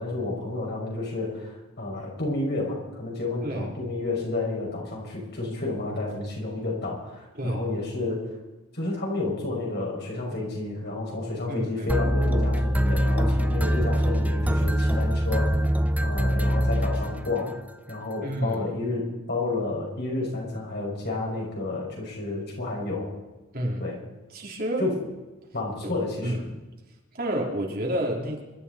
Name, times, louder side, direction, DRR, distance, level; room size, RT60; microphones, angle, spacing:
voice 1, 0.0-8.3 8.7-15.6 16.0-17.6 17.9-23.1 23.8-24.0 24.8-25.0 25.5-26.4, left 2 dB, 55° left, -2 dB, 6.0 m, -30 dB
voice 2, 11.5-11.9 18.2-18.6 23.5-23.8 24.3-24.8 25.8-25.9 26.2-26.4 27.1-28.4, right 1 dB, 45° right, 0 dB, 3.1 m, -29 dB
sound 1, 11.9-17.6, equal, 5° right, 0.6 m, -23 dB
26.0 x 12.5 x 4.2 m, 1.1 s
head